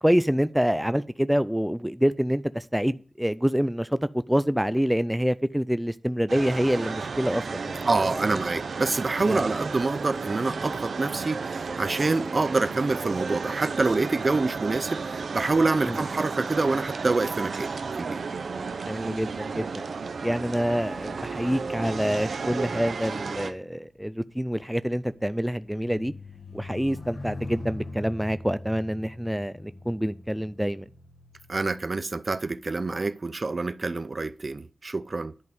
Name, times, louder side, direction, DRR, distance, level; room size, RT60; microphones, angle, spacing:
voice 1, 0.0-7.9 8.1-8.5 9.2-9.6 15.9-16.0 18.9-19.8 20.2-26.1 26.5-30.9, equal, 5° right, 0.4 m, -26 dB
sound 1, 6.3-23.5, right 4 dB, 90° right, 0.9 m, -33 dB
voice 2, 7.9-18.2 31.5-35.3, right 3 dB, 45° right, 0.6 m, -26 dB
sound 2, 20.8-32.4 33.1-33.4, left 2 dB, 65° left, 1.8 m, -43 dB
10.5 x 5.3 x 7.9 m
wide cardioid pair, 100°, 0 cm